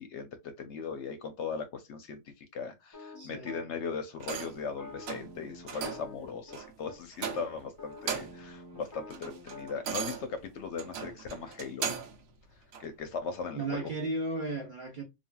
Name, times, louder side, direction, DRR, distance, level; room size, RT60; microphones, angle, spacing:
voice 1, 0.0-12.0 12.8-13.9, left 5 dB, 65° left, 0.8 m, -38 dB
sound 1, 2.9-3.7 4.6-6.6 6.8-7.0 7.2-9.7, left 3 dB, 25° left, 0.5 m, -48 dB
voice 2, 3.2-3.6 13.5-15.0, right 2 dB, 45° right, 0.8 m, -35 dB
sound 2, 4.2-4.7 5.0-5.3 5.7-6.1 6.5-6.7 7.1-7.6 7.9-8.5 8.9-12.2 12.7-12.9, right 7 dB, 80° right, 1.0 m, -38 dB
3.3 x 2.4 x 2.2 m
omnidirectional pair, 1.4 m